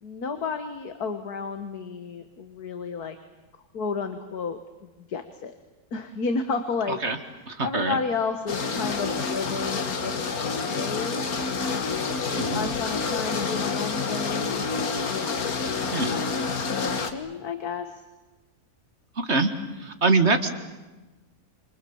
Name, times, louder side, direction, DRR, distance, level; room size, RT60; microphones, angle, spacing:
voice 1, 0.0-3.2 3.7-4.6 5.0-5.5 5.9-7.0 7.6-12.1 12.5-14.6 15.1-16.4 16.7-18.0, left 5 dB, 90° left, 8 dB, 2.0 m, -32 dB
voice 2, 7.5-8.0 12.4-12.7 15.9-16.2 19.2-19.5 19.8-20.5, right 3 dB, 45° right, 8 dB, 2.1 m, -24 dB
sound 1, 8.5-17.1, left 4 dB, 75° left, 2.2 m, -28 dB
28.5 x 26.0 x 7.2 m, 1.1 s
omnidirectional pair, 1.6 m